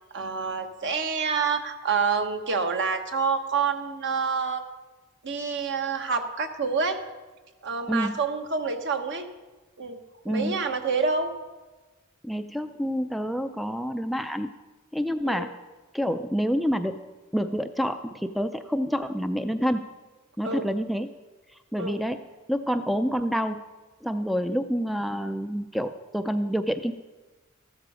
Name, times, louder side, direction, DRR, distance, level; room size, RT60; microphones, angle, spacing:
voice 1, 0.1-4.6 5.2-7.0 7.6-9.3 9.8-10.0 10.3-11.3 15.2-15.5 20.4-20.6 21.8-22.0, right 5 dB, 55° right, 6 dB, 1.2 m, -27 dB
voice 2, 12.2-14.5 14.9-15.5 15.9-17.0 17.3-19.9 20.4-21.1 21.7-22.2 22.5-23.6 24.0-26.9, equal, ahead, 9 dB, 0.4 m, -27 dB
14.5 x 12.5 x 4.9 m, 1.2 s
head